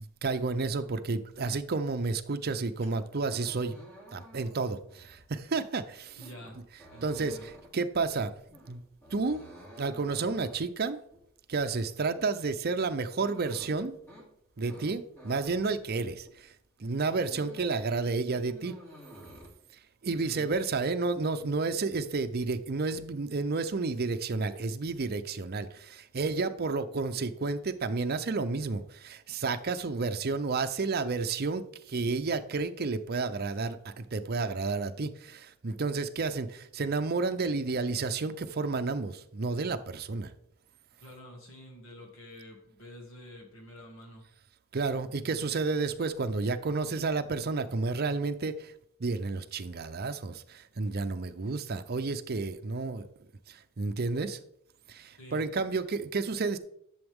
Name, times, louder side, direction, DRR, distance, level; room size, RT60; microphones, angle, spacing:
voice 1, 0.0-3.8 4.1-6.2 7.0-7.4 7.7-8.8 9.1-9.4 9.8-11.0 11.5-14.0 14.6-16.5 16.8-18.7 20.0-40.3 44.7-48.7 49.0-53.0 53.5-54.4 54.9-56.6, right 3 dB, 45° right, 0.6 m, -31 dB
sound 1, 2.5-16.5 16.8-17.8 18.1-19.5, equal, 10° left, 2.9 m, -53 dB
voice 2, 6.2-6.6 6.9-7.5 20.2-20.5 41.0-44.3 55.1-55.4, equal, 65° left, 2.0 m, -48 dB
11.0 x 7.0 x 3.6 m
head